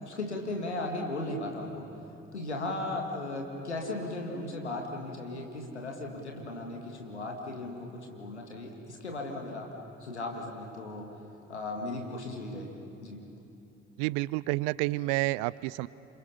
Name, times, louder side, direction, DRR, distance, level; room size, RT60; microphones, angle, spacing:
voice 1, 0.0-1.9 2.3-9.7 10.0-11.1 11.5-13.2, left 2 dB, 85° left, 1 dB, 1.9 m, -36 dB
voice 2, 14.0-15.9, right 20 dB, 65° right, 21 dB, 0.5 m, -29 dB
29.0 x 27.0 x 5.7 m, 2.8 s
figure-of-eight pair, 40°, 33 cm